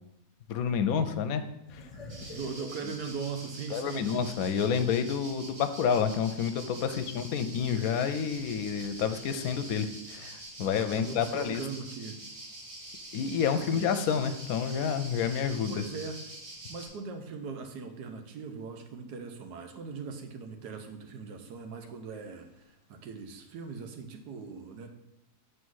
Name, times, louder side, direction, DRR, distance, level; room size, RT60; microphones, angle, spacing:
voice 1, 0.5-1.4 1.7-1.9 3.7-11.6 13.1-15.8, left 7 dB, 70° left, 9 dB, 0.9 m, -29 dB
sound 1, 1.7-4.8 5.2-5.3 6.9-7.2, left 2 dB, 30° left, 0.8 m, -49 dB
sound 2, 2.1-16.9, right 1 dB, 65° right, 2.4 m, -46 dB
voice 2, 2.3-4.5 6.9-7.0 10.8-12.2 13.6-13.8 15.7-16.3 16.7-24.9, right 5 dB, 80° right, 5 dB, 1.3 m, -40 dB
7.5 x 3.1 x 6.2 m, 0.86 s
omnidirectional pair, 1.7 m